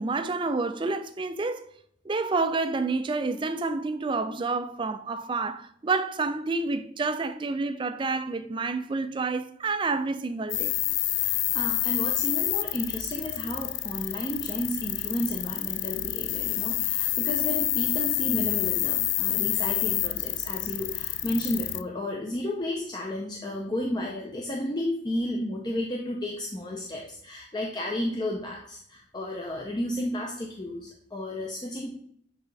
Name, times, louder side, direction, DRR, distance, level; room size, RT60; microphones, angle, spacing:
voice 1, 0.0-1.7 2.0-10.7, right 3 dB, 25° right, 0.4 m, -29 dB
sound 1, 10.5-21.8, left 16 dB, 80° left, 0.3 m, -28 dB
voice 2, 11.1-31.9, left 1 dB, 25° left, 0.6 m, -32 dB
8.1 x 3.7 x 3.3 m
head